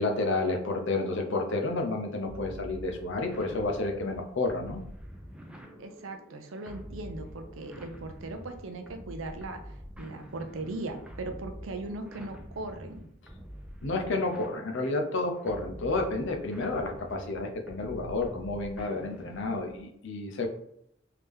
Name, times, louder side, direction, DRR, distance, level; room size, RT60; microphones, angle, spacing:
voice 1, 0.0-4.8 13.8-20.5, left 2 dB, 65° left, 3 dB, 0.6 m, -30 dB
sound 1, 2.3-19.9, equal, 5° right, 0.4 m, -46 dB
voice 2, 5.8-13.1, right 2 dB, 75° right, 7 dB, 0.5 m, -39 dB
3.4 x 2.8 x 3.5 m, 0.74 s
head